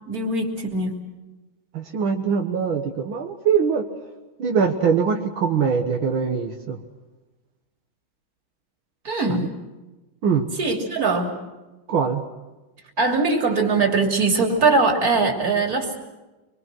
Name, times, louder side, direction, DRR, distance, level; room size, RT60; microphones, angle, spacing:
voice 1, 0.1-1.0 9.0-9.5 10.5-11.4 13.0-16.0, right 3 dB, 45° right, 3 dB, 3.4 m, -21 dB
voice 2, 1.7-3.8 4.4-6.8 10.2-10.5 11.9-12.2, right 6 dB, 80° right, 3 dB, 2.1 m, -22 dB
24.5 x 24.5 x 6.2 m, 1.1 s
omnidirectional pair, 2.2 m